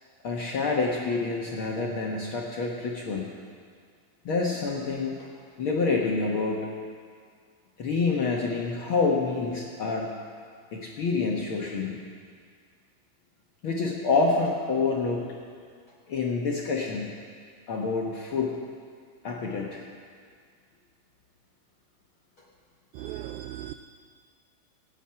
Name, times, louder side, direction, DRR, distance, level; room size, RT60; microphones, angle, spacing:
voice 1, 0.2-3.3 4.2-5.3 5.6-6.7 7.8-10.1 10.7-12.0 13.6-15.3 16.1-17.2 17.7-18.6 19.2-19.8, left 4 dB, 60° left, -2 dB, 1.4 m, -27 dB
voice 2, 23.0-23.7, right 13 dB, 85° right, 9 dB, 1.7 m, -37 dB
24.5 x 9.1 x 5.8 m, 2.1 s
omnidirectional pair, 4.0 m